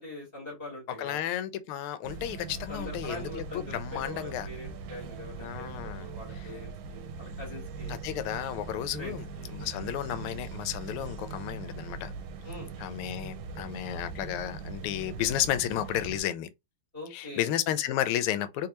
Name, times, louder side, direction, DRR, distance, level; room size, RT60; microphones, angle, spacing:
voice 1, 0.0-1.2 2.7-5.7 6.0-8.0 9.0-9.7 10.0-10.2 12.4-12.7 16.9-17.6, left 1 dB, 30° left, 1.5 m, -43 dB
voice 2, 1.0-4.5 5.4-6.1 6.4-6.5 7.9-9.2 9.5-12.1 12.8-16.5 17.1-18.7, left 11 dB, 90° left, 1.5 m, -32 dB
sound 1, 2.0-16.2, right 5 dB, 75° right, 1.3 m, -41 dB
3.5 x 3.2 x 2.8 m
omnidirectional pair, 2.3 m